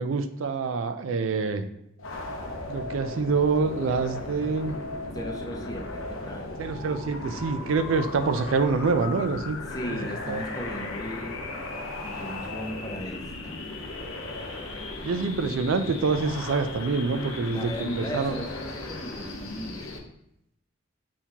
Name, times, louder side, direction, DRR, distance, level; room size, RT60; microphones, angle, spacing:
voice 1, 0.0-1.7 2.7-4.8 6.6-9.6 9.9-10.0 10.3-10.4 15.0-18.4, right 4 dB, 80° right, 9 dB, 0.4 m, -26 dB
sound 1, 2.0-20.0, left 2 dB, 80° left, 0.7 m, -36 dB
voice 2, 5.1-6.6 9.7-11.4 12.0-13.6 17.5-20.1, equal, 20° left, 2 dB, 0.6 m, -37 dB
4.3 x 3.6 x 2.9 m, 0.81 s
head